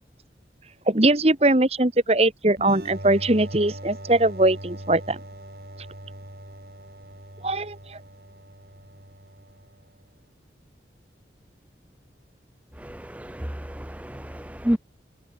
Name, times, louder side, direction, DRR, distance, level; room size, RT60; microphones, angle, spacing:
voice 1, 0.9-5.2 7.4-8.0, right 2 dB, 35° right, 1.6 m, -21 dB
sound 1, 2.6-10.0, right 1 dB, 60° right, 5.5 m, -41 dB
voice 2, 12.8-14.8, equal, 10° right, 0.7 m, -30 dB
head